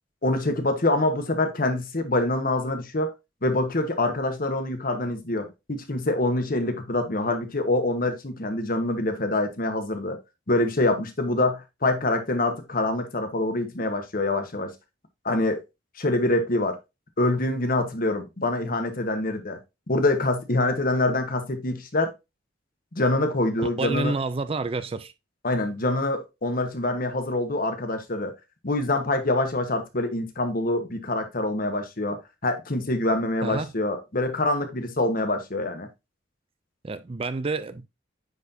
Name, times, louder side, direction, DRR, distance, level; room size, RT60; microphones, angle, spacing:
voice 1, 0.2-3.1 3.4-10.2 10.5-14.7 15.2-15.6 16.0-16.8 17.2-19.6 19.9-22.1 23.0-24.1 25.4-28.3 28.6-35.9, left 2 dB, 50° left, 1.3 m, -25 dB
voice 2, 23.8-25.1 33.4-33.7 36.8-37.9, right 3 dB, 30° right, 0.4 m, -29 dB
9.4 x 4.3 x 2.7 m
head